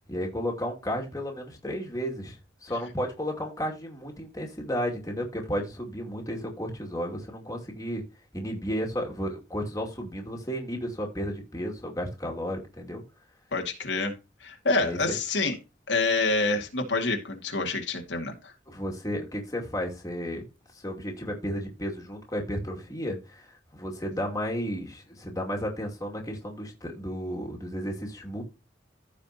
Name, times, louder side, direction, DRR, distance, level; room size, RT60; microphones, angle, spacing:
voice 1, 0.1-8.0 8.3-13.0 14.8-15.0 18.7-20.4 20.7-28.4, equal, 20° left, 0 dB, 2.4 m, -33 dB
voice 2, 13.5-14.1 14.4-15.6 15.9-18.5, left 3 dB, 85° left, 2 dB, 2.2 m, -27 dB
15.0 x 5.2 x 2.9 m, 0.28 s
head